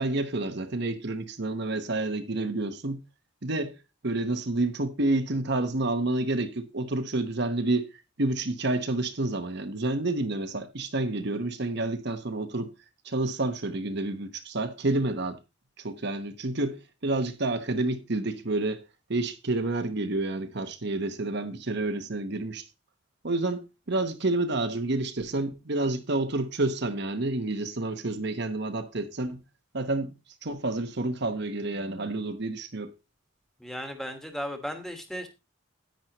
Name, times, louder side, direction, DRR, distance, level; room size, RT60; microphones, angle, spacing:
voice 1, 0.0-3.0 3.4-3.7 4.0-7.9 8.2-12.7 13.0-15.4 15.8-18.8 19.1-22.6 23.2-29.4 29.7-30.1 30.4-32.9, right 2 dB, 55° right, 1.0 m, -29 dB
voice 2, 33.6-35.3, equal, ahead, 1.4 m, -35 dB
10.5 x 9.5 x 3.0 m
head